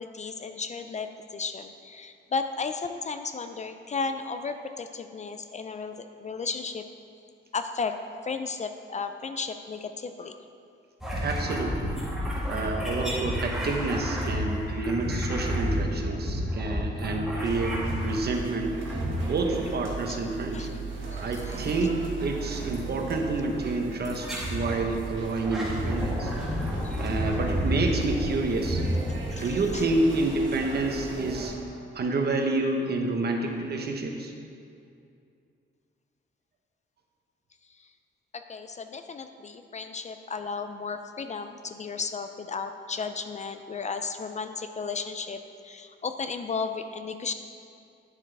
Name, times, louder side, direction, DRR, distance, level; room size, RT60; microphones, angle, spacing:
voice 1, 0.0-6.9 7.5-8.0 8.2-10.4 15.4-15.6 16.1-16.2 16.7-16.9 20.1-20.2 20.5-20.7 21.1-21.9 26.8-27.1 29.3-29.8 37.8-37.9 38.3-47.3, left 4 dB, 35° left, 8 dB, 0.4 m, -34 dB
sound 1, 11.0-18.4 18.8-19.6 21.3-21.7 22.7-22.9 24.0-24.8 25.3-29.6, equal, ahead, 1.9 m, -30 dB
voice 2, 11.2-12.0 12.5-18.7 19.2-20.7 21.2-26.3 27.0-28.8 29.3-31.5 31.9-34.3, right 2 dB, 50° right, 3 dB, 0.9 m, -28 dB
sound 2, 17.5-31.5, right 3 dB, 70° right, 1.6 m, -38 dB
9.9 x 7.3 x 3.3 m, 2.5 s
cardioid pair, 120°, 21 cm